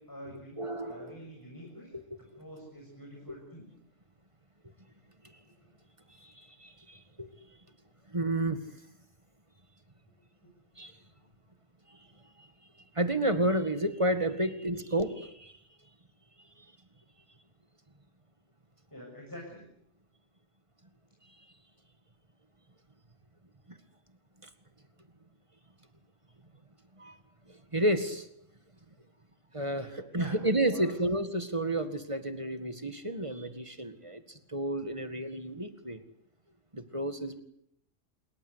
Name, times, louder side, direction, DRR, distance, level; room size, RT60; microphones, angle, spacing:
voice 1, 0.0-1.9 2.4-3.7 5.6-5.7 10.4-10.5 18.9-19.6 29.7-31.0, equal, 15° left, 1 dB, 6.7 m, -46 dB
voice 2, 0.6-1.2 6.6-7.3 8.1-8.6 10.8-10.9 13.0-15.5 27.0-27.1 27.7-28.2 29.5-29.9 30.1-34.2 34.5-36.0 36.7-37.4, right 1 dB, 25° right, 9 dB, 2.0 m, -30 dB
27.0 x 23.0 x 8.2 m, 0.73 s
omnidirectional pair, 1.3 m